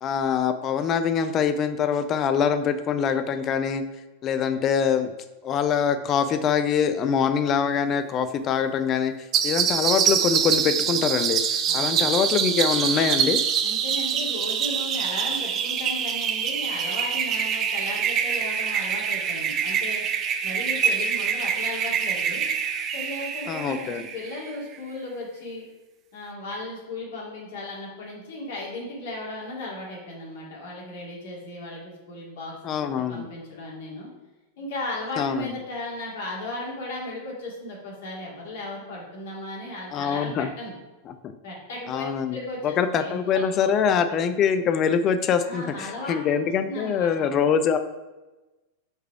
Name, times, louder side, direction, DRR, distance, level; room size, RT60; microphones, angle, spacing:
voice 1, 0.0-3.8 4.2-5.1 5.4-13.4 23.5-24.0 32.6-33.3 35.2-35.5 39.9-40.5 41.1-41.3 41.9-42.4 42.6-47.8, left 7 dB, 30° left, 9 dB, 0.4 m, -24 dB
sound 1, 9.3-24.5, right 7 dB, 30° right, 0.5 m, -25 dB
voice 2, 11.7-12.2 13.6-20.0 20.4-22.5 22.9-25.7 26.1-34.1 34.6-40.7 41.4-42.0 42.3-43.5 43.9-44.2 45.4-46.2 46.7-47.3, left 2 dB, 55° left, -3 dB, 2.1 m, -36 dB
5.3 x 4.0 x 4.7 m, 1.1 s
figure-of-eight pair, 90°, 0 cm